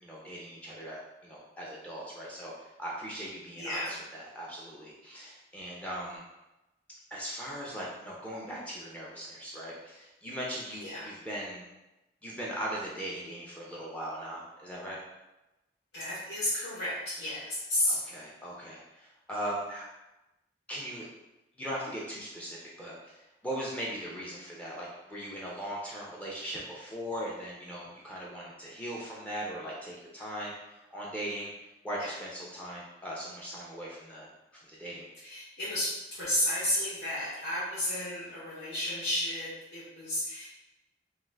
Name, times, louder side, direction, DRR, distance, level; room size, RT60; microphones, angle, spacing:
voice 1, 0.0-2.5 2.8-6.2 7.1-11.7 12.2-15.0 17.9-19.9 20.7-21.0 21.6-31.5 31.8-34.3 34.5-35.1, right 1 dB, 10° left, -6 dB, 0.4 m, -39 dB
voice 2, 3.6-4.0 10.8-11.1 15.9-18.0 32.0-32.1 35.2-40.5, left 1 dB, 80° left, -10 dB, 0.9 m, -32 dB
2.5 x 2.4 x 3.2 m, 0.99 s
head